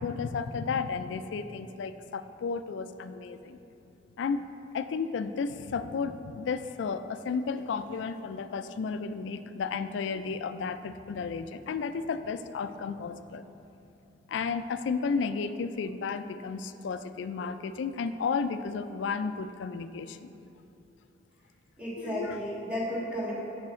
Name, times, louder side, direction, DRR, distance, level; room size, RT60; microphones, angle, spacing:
voice 1, 0.0-3.6 4.2-4.4 4.7-13.4 14.3-20.3 22.0-22.4, left 5 dB, 75° left, 11 dB, 0.3 m, -33 dB
voice 2, 21.8-23.3, equal, 10° right, -8 dB, 1.7 m, -33 dB
7.2 x 6.1 x 4.3 m, 2.8 s
head